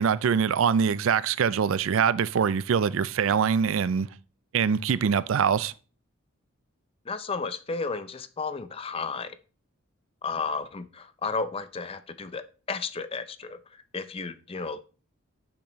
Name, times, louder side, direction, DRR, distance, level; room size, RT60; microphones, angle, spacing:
voice 1, 0.0-4.1 4.5-5.7, right 7 dB, 70° right, 0.4 m, -24 dB
voice 2, 7.1-9.4 10.2-13.6 13.9-14.8, left 4 dB, 25° left, 0.5 m, -33 dB
10.5 x 5.9 x 3.0 m
head